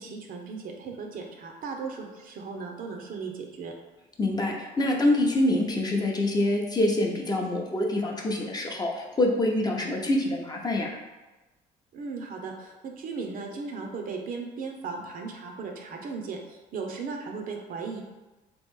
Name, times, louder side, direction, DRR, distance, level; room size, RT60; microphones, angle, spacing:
voice 1, 0.0-3.7 11.9-18.0, right 4 dB, 55° right, 2 dB, 0.7 m, -36 dB
voice 2, 4.2-11.0, left 1 dB, 25° left, 0 dB, 0.6 m, -25 dB
3.5 x 3.0 x 3.6 m, 1.1 s
cardioid pair, 110°, 17 cm